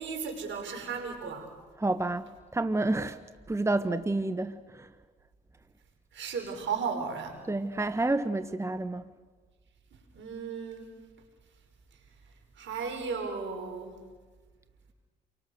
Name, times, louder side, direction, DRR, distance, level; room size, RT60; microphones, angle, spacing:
voice 1, 0.0-1.5 6.1-7.4 10.1-11.0 12.6-14.0, right 5 dB, 70° right, 5.8 m, -35 dB
voice 2, 1.8-3.2 3.5-4.9 7.5-9.0, right 2 dB, 15° right, 1.2 m, -29 dB
30.0 x 24.0 x 6.6 m
supercardioid pair, 60°, 20 cm